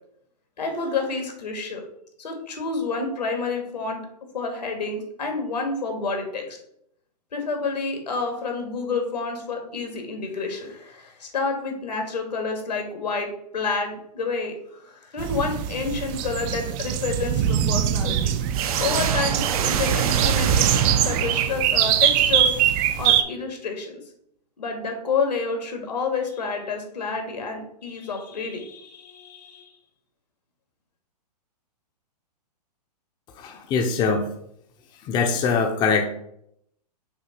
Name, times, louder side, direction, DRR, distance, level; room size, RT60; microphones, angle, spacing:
voice 1, 0.6-1.8 2.2-4.0 4.3-6.6 7.3-18.4 18.8-20.8 21.0-22.5 23.0-24.0 24.6-29.7, left 4 dB, 85° left, 3 dB, 2.0 m, -29 dB
sound 1, 15.2-23.2, right 10 dB, 30° right, 0.5 m, -22 dB
sound 2, 18.5-21.9, right 8 dB, 60° right, 0.8 m, -27 dB
voice 2, 33.4-34.3 35.0-36.1, left 5 dB, 20° left, 4 dB, 0.7 m, -22 dB
6.7 x 2.8 x 5.7 m, 0.72 s
hypercardioid pair, 130°, 21 cm